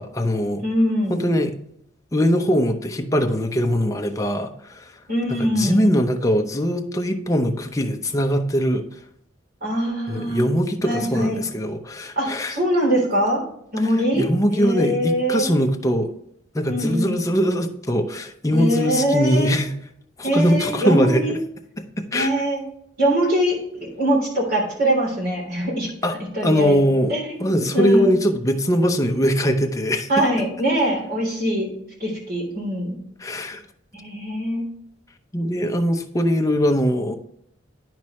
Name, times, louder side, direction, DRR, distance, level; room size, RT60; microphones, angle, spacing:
voice 1, 0.0-0.6 1.1-1.5 2.1-4.9 5.3-8.8 10.1-12.5 14.1-16.1 16.5-19.7 20.2-21.4 22.0-22.4 26.0-26.2 26.4-27.1 27.4-30.1 33.2-33.6 35.3-37.1, equal, 20° left, 5 dB, 0.7 m, -21 dB
voice 2, 0.6-1.2 5.1-6.0 9.6-10.4 10.8-11.4 12.1-13.4 13.7-15.4 16.7-17.2 18.5-19.6 20.2-21.4 22.1-22.6 23.0-25.9 26.3-26.8 27.1-28.2 30.1-31.7 32.0-33.0 33.9-34.6, equal, 55° right, -2 dB, 3.4 m, -23 dB
9.6 x 6.0 x 3.1 m, 0.72 s
head